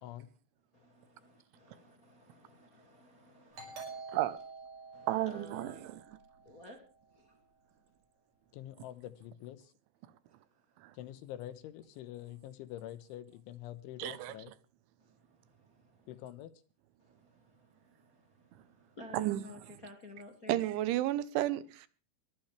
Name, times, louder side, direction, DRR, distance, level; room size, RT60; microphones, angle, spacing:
voice 1, 0.7-4.0 4.9-5.9 6.4-6.8 7.2-7.3 17.0-20.6, left 2 dB, 40° left, 1.2 m, -53 dB
Doorbell, 3.5-6.9, right 4 dB, 50° right, 7.5 m, -48 dB
voice 2, 5.1-6.0 10.8-10.9 14.0-14.3 19.1-19.4 20.5-21.9, right 14 dB, 80° right, 3.3 m, -32 dB
voice 3, 8.5-9.7 10.9-14.5 16.1-16.5, left 12 dB, 80° left, 3.5 m, -46 dB
22.0 x 13.0 x 3.4 m
omnidirectional pair, 5.5 m